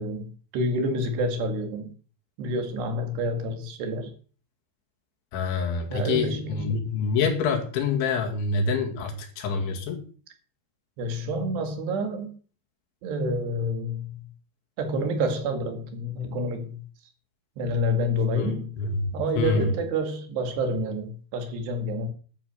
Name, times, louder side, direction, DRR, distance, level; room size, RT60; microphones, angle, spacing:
voice 1, 0.0-1.9 2.4-4.1 5.9-6.8 11.0-12.3 13.0-14.2 14.8-16.9 17.6-18.8 19.1-22.1, equal, 70° right, 3.9 m, -28 dB
voice 2, 5.3-10.0 18.3-19.7, left 4 dB, 80° left, 4.5 m, -26 dB
11.5 x 9.3 x 6.7 m
omnidirectional pair, 5.3 m